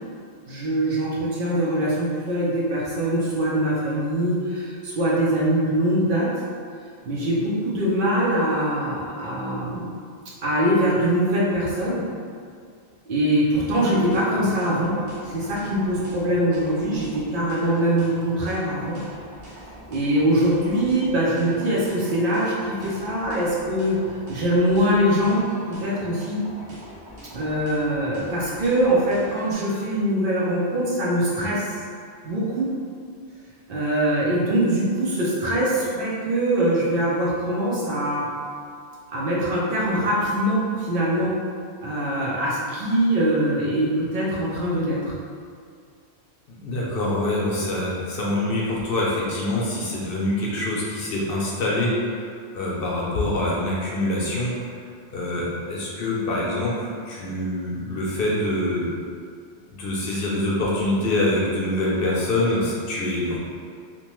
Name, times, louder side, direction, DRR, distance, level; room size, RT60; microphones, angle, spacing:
voice 1, 0.5-6.3 7.0-9.9 10.4-12.1 13.1-14.9 15.2-19.0 19.9-25.4 25.7-26.4 27.3-31.7 32.2-32.7 33.7-38.3 39.1-41.3 41.8-45.1, right 1 dB, 60° right, -6 dB, 0.7 m, -23 dB
sound 1, 14.1-29.5, right 1 dB, 85° right, 1.0 m, -43 dB
voice 2, 46.5-54.8 55.1-58.9 59.7-63.4, left 1 dB, 65° left, -5 dB, 0.7 m, -25 dB
2.8 x 2.2 x 3.0 m, 2.2 s
omnidirectional pair, 1.1 m